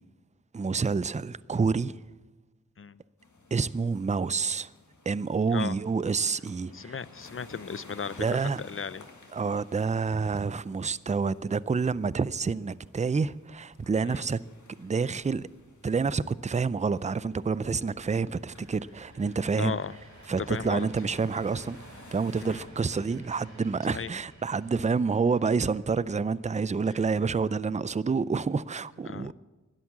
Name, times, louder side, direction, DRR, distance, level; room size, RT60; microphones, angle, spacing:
voice 1, 0.5-2.0 3.5-4.7 5.1-7.0 8.2-8.6 9.3-14.4 14.8-15.5 15.8-19.8 20.3-21.8 22.1-29.3, right 5 dB, 25° right, 0.4 m, -28 dB
sound 1, 3.2-22.7, left 3 dB, 75° left, 1.8 m, -54 dB
voice 2, 6.7-9.1 14.0-14.2 19.5-19.9 20.4-20.9 22.4-22.6 23.8-24.1 29.1-29.3, left 6 dB, 45° left, 0.5 m, -36 dB
sound 2, 16.5-28.4, right 1 dB, 65° right, 3.8 m, -54 dB
12.0 x 11.0 x 7.3 m
wide cardioid pair, 50°, 31 cm